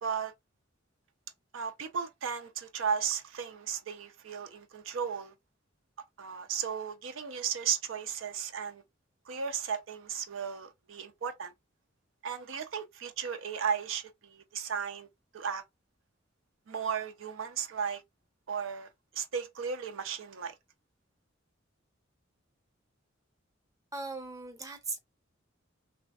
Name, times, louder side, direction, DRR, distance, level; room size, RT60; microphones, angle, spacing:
voice 1, 0.0-0.3 1.5-5.3 6.2-8.8 9.3-11.5 12.2-15.1 15.3-15.6 16.7-18.0 18.5-20.5, right 7 dB, 80° right, 0.5 m, -35 dB
voice 2, 23.9-25.0, right 3 dB, 15° right, 0.7 m, -38 dB
3.3 x 2.4 x 2.3 m
head